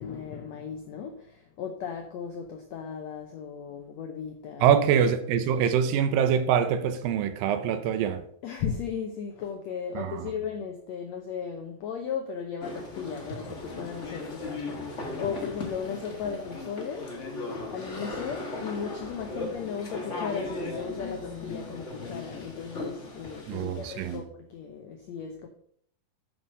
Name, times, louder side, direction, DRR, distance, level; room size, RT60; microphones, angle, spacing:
voice 1, 0.0-4.8 8.4-25.5, left 7 dB, 80° left, 1.5 m, -36 dB
voice 2, 4.6-8.2 10.0-10.3 23.5-24.2, right 8 dB, 80° right, 2.4 m, -24 dB
sound 1, 12.6-24.2, left 2 dB, 55° left, 0.8 m, -37 dB
9.4 x 6.1 x 5.3 m
omnidirectional pair, 4.2 m